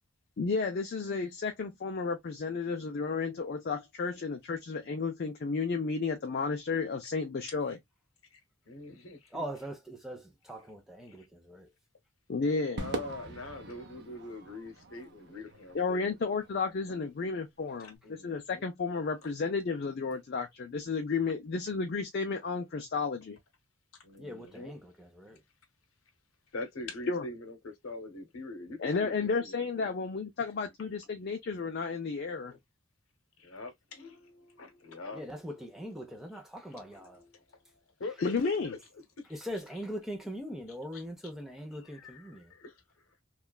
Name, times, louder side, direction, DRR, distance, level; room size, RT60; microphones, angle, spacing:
voice 1, 0.4-7.8 12.3-12.8 15.7-23.4 27.1-27.2 28.8-32.5 38.2-38.7, left 4 dB, 50° left, 0.4 m, -32 dB
voice 2, 8.7-9.4 11.1-11.3 12.7-16.2 16.9-17.0 17.8-18.6 24.0-24.8 26.5-29.9 32.5-32.6 33.4-35.3 36.9-37.4 38.0-38.4 39.2-39.3 40.9-41.0 41.8-42.8, left 2 dB, 85° left, 0.8 m, -44 dB
voice 3, 9.3-11.7 24.2-25.4 35.1-37.2 39.3-42.5, equal, ahead, 0.5 m, -41 dB
Crowd / Fireworks, 12.8-17.3, right 3 dB, 50° right, 0.6 m, -43 dB
2.9 x 2.3 x 2.2 m
head